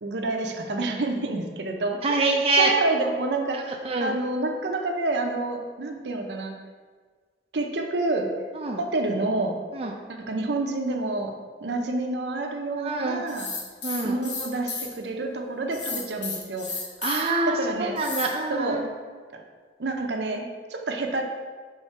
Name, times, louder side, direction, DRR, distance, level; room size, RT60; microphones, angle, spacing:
voice 1, 0.0-2.0 2.6-3.7 4.0-6.6 7.5-8.3 8.8-9.6 10.1-13.5 14.0-16.7 17.5-18.0 18.5-18.8 19.3-19.4 19.8-21.2, right 2 dB, 75° right, 3 dB, 0.7 m, -28 dB
voice 2, 2.0-2.7 3.5-4.2 8.5-8.8 9.7-10.0 12.8-13.2 13.8-14.2 17.0-18.8, right 3 dB, 35° right, 0 dB, 0.5 m, -25 dB
sound 1, 13.3-14.9 15.7-17.3 18.0-18.3, left 4 dB, 85° left, 1.1 m, -33 dB
5.7 x 3.9 x 4.5 m, 1.5 s
head